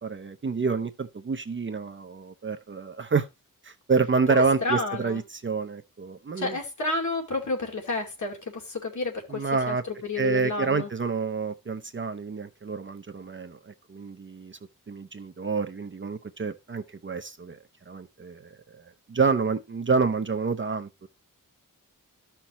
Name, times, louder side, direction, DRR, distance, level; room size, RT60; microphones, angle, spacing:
voice 1, 0.0-3.3 3.6-6.6 9.3-9.8 10.2-14.6 14.9-17.6 17.9-18.4 18.8-18.9 19.1-21.1, right 4 dB, 35° right, 0.6 m, -28 dB
voice 2, 4.3-5.2 6.4-10.9, left 3 dB, 60° left, 2.5 m, -30 dB
14.0 x 5.9 x 3.0 m
wide cardioid pair, 175°, 34 cm